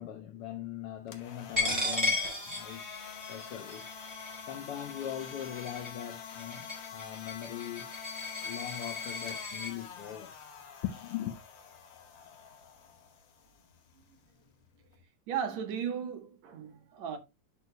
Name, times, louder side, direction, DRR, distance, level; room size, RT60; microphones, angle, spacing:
voice 1, 0.0-3.8 4.4-7.9 8.4-10.4 10.8-11.4, left 11 dB, 75° left, 1.3 m, -40 dB
sound 1, 1.0-15.0, left 6 dB, 55° left, 1.4 m, -47 dB
Coin (dropping), 1.6-9.7, left 3 dB, 10° right, 4.1 m, -35 dB
voice 2, 15.3-17.2, right 8 dB, 70° right, 2.4 m, -35 dB
11.0 x 6.4 x 2.2 m
omnidirectional pair, 3.4 m